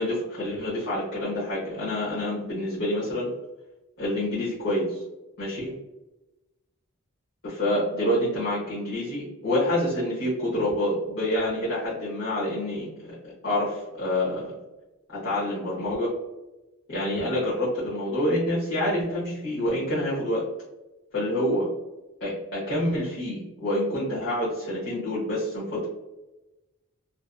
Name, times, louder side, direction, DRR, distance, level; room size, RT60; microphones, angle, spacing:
voice 1, 0.0-3.3 4.0-5.0 5.4-5.7 7.4-14.5 15.1-16.1 16.9-20.4 21.1-21.7 22.2-25.9, left 1 dB, 55° left, -9 dB, 0.8 m, -27 dB
2.6 x 2.3 x 2.2 m, 1.0 s
head